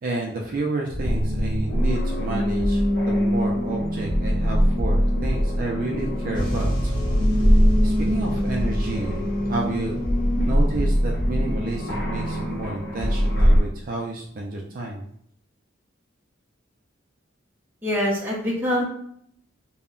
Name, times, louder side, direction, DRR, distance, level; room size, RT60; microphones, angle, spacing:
voice 1, 0.0-6.9 7.8-10.1 10.4-15.0, right 2 dB, 45° right, 0 dB, 0.3 m, -31 dB
sound 1, 0.9-13.6, equal, 55° left, 0.7 m, -22 dB
sound 2, 6.3-13.9 14.6-14.7, equal, 25° left, 0.8 m, -32 dB
voice 2, 17.8-18.8, left 1 dB, 10° right, -4 dB, 0.7 m, -24 dB
2.1 x 2.1 x 3.6 m, 0.67 s
head